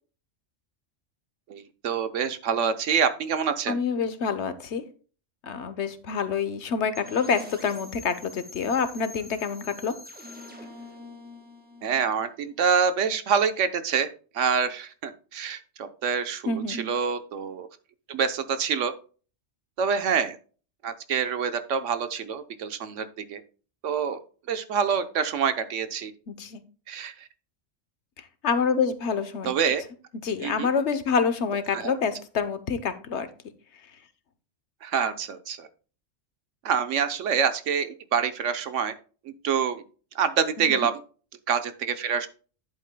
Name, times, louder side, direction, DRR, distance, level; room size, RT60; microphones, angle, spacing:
voice 1, 1.5-3.8 11.8-14.1 14.3-17.7 18.1-18.9 19.8-20.4 20.8-23.4 23.8-24.2 24.5-26.1 26.9-27.3 29.4-29.8 30.4-30.7 31.7-32.0 34.8-35.7 36.6-38.9 39.2-39.8 40.1-41.0 41.5-42.3, right 6 dB, 75° right, 10 dB, 1.2 m, -26 dB
voice 2, 3.7-4.8 5.4-10.0 16.5-16.9 26.3-26.6 28.2-29.5 30.2-33.3 40.6-40.9, left 5 dB, 65° left, 11 dB, 1.1 m, -27 dB
sound 1, 6.9-12.7, left 2 dB, 10° right, 1.3 m, -45 dB
10.5 x 8.4 x 2.2 m, 0.38 s
omnidirectional pair, 1.3 m